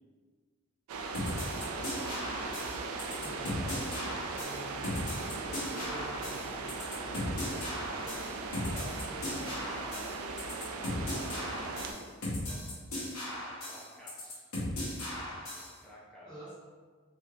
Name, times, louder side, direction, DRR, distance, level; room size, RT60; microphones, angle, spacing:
sound 1, 0.9-11.9, right 3 dB, 75° right, 0.3 m, -38 dB
sound 2, 1.1-15.7, left 1 dB, 85° left, 0.9 m, -37 dB
voice 1, 1.2-3.2 3.6-3.9 5.3-8.1 8.4-10.0 10.8-12.7 13.6-14.5 15.8-16.5, equal, 5° left, -7 dB, 0.6 m, -52 dB
voice 2, 3.2-3.6 4.2-4.8 5.8-6.3 9.0-9.4 16.2-16.5, right 1 dB, 20° right, -10 dB, 0.9 m, -48 dB
3.2 x 2.7 x 2.3 m, 1.5 s
head